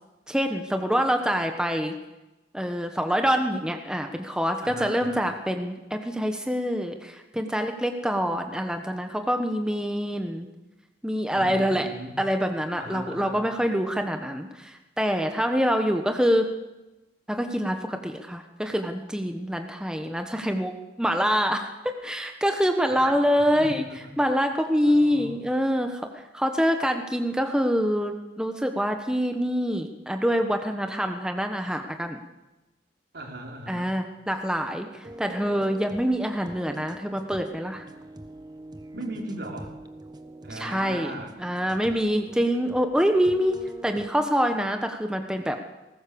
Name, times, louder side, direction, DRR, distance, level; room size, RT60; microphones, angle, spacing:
voice 1, 0.3-1.9 2.5-10.5 11.0-11.9 12.2-16.5 17.3-23.8 24.2-32.2 33.7-37.8 40.5-41.1 41.4-45.6, equal, 5° right, 5 dB, 1.3 m, -25 dB
voice 2, 4.6-5.3 11.3-12.2 12.8-13.4 22.9-24.1 24.8-25.4 33.1-33.9 38.9-39.8 40.4-41.3, right 1 dB, 65° right, 1 dB, 4.1 m, -38 dB
sound 1, 35.0-44.1, right 1 dB, 25° right, 1.2 m, -44 dB
20.0 x 18.5 x 7.0 m, 1.0 s
head